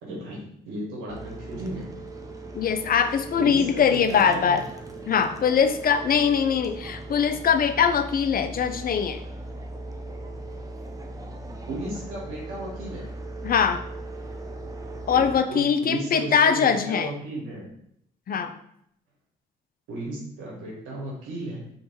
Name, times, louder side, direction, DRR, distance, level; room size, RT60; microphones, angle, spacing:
voice 1, 0.0-1.9 3.4-4.6 11.7-13.1 15.1-17.7 19.9-21.7, right 1 dB, 85° right, -3 dB, 1.4 m, -35 dB
sound 1, 1.1-15.4, right 2 dB, 15° right, 0.7 m, -39 dB
voice 2, 2.5-4.6 5.1-9.2 13.4-13.8 15.1-17.1 18.3-18.5, left 7 dB, 45° left, 8 dB, 0.5 m, -22 dB
3.3 x 3.2 x 4.4 m, 0.71 s
hypercardioid pair, 50°, 20 cm